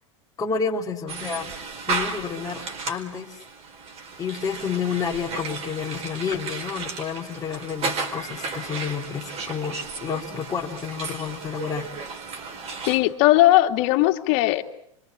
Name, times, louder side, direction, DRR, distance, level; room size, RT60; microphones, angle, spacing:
voice 1, 0.4-1.6 1.9-3.4 4.2-11.9, left 6 dB, 20° left, -3 dB, 2.8 m, -30 dB
sound 1, 1.1-13.0, right 4 dB, 35° right, 4.6 m, -34 dB
voice 2, 12.9-14.6, left 16 dB, 60° left, 6 dB, 2.3 m, -18 dB
26.5 x 25.5 x 7.6 m, 0.71 s
hypercardioid pair, 110°, 17 cm